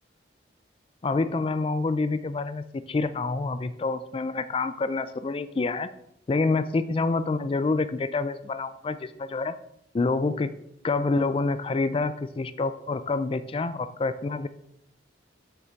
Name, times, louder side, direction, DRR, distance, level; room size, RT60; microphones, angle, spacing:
voice 1, 1.0-5.9 6.3-9.5 9.9-10.5 10.8-14.5, left 3 dB, 30° left, 12 dB, 0.3 m, -27 dB
6.6 x 5.9 x 4.5 m, 0.74 s
head